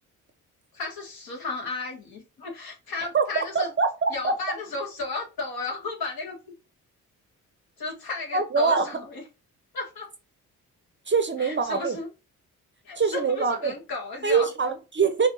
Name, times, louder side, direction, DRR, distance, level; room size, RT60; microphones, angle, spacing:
voice 1, 0.7-3.7 4.1-6.4 7.8-9.2 9.7-10.1 11.4-12.1 12.8-14.5, left 3 dB, 55° left, 1.7 m, -34 dB
voice 2, 3.5-4.3 8.3-8.9 11.1-12.0 13.0-13.7 14.2-15.3, right 5 dB, 25° right, 0.7 m, -24 dB
5.2 x 2.4 x 2.6 m
hypercardioid pair, 40°, 42 cm